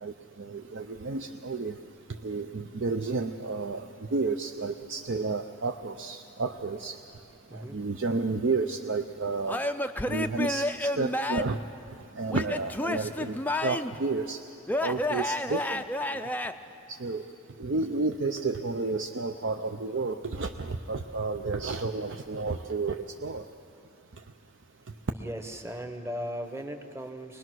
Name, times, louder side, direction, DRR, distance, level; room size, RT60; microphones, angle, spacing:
voice 1, 0.0-1.8 2.2-7.0 7.5-9.6 10.1-11.6 12.1-14.4 14.8-15.8 16.1-16.3 16.9-17.3 17.6-23.5, right 3 dB, 60° right, 5 dB, 0.6 m, -31 dB
Male speech man speaking / Yell / Laughter, 9.5-11.6 12.3-14.0 14.7-16.5, left 1 dB, 10° left, 0.4 m, -30 dB
voice 2, 25.1-27.4, equal, 10° right, 6 dB, 1.1 m, -37 dB
23.0 x 20.0 x 6.2 m, 2.6 s
head